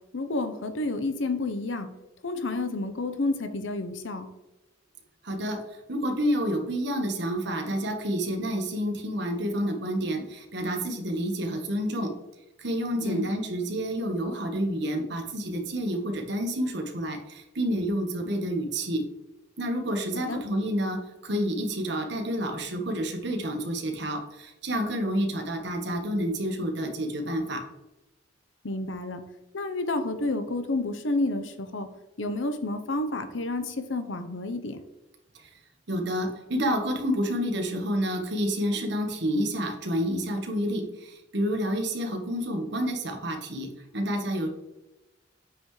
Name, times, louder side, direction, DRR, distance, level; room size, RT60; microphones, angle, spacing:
voice 1, 0.1-1.9 2.2-4.3 13.0-13.3 20.3-20.4 28.6-29.2 29.5-31.9 32.2-34.8, left 2 dB, 90° left, 8 dB, 0.9 m, -30 dB
voice 2, 5.2-12.1 12.6-19.0 19.6-27.6 35.3-35.5 35.9-43.7 43.9-44.5, equal, 65° right, 3 dB, 1.5 m, -29 dB
8.7 x 5.8 x 3.3 m, 0.97 s
head